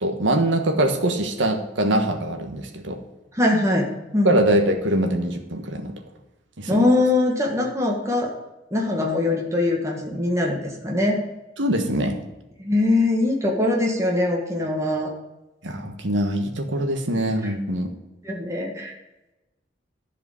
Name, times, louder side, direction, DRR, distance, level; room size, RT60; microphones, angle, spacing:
voice 1, 0.0-3.0 4.2-5.9 6.6-6.8 11.6-12.2 15.6-17.9, right 1 dB, 80° right, 5 dB, 1.3 m, -23 dB
voice 2, 3.3-4.4 6.7-8.3 8.7-11.2 12.6-15.1 17.4-17.5 18.2-18.9, left 2 dB, 15° right, -1 dB, 1.7 m, -22 dB
11.0 x 4.9 x 8.1 m, 1.0 s
head